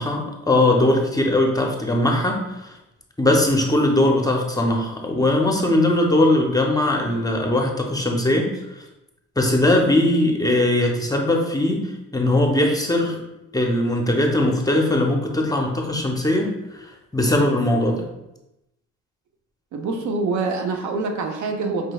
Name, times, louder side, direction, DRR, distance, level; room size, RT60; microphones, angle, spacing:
voice 1, 0.0-2.7 3.2-8.5 9.4-13.2 13.5-18.1, left 1 dB, 10° left, 1 dB, 0.6 m, -20 dB
voice 2, 19.7-21.9, right 3 dB, 70° right, 4 dB, 0.6 m, -25 dB
5.2 x 3.1 x 2.3 m, 0.91 s
cardioid pair, 90°, 30 cm